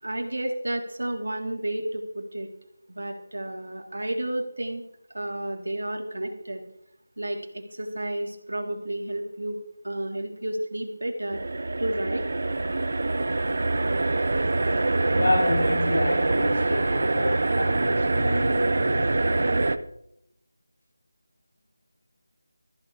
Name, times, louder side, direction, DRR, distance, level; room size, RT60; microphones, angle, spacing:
voice 1, 0.0-2.5 2.9-4.8 5.1-6.6 7.2-9.6 9.8-11.4 11.8-12.2, right 1 dB, 90° right, 3.2 m, -31 dB
sound 1, 11.3-19.8, right 2 dB, 50° right, 0.7 m, -25 dB
voice 2, 15.1-19.7, left 1 dB, 85° left, 6.5 m, -28 dB
14.5 x 10.0 x 4.9 m
figure-of-eight pair, 175°, 0 cm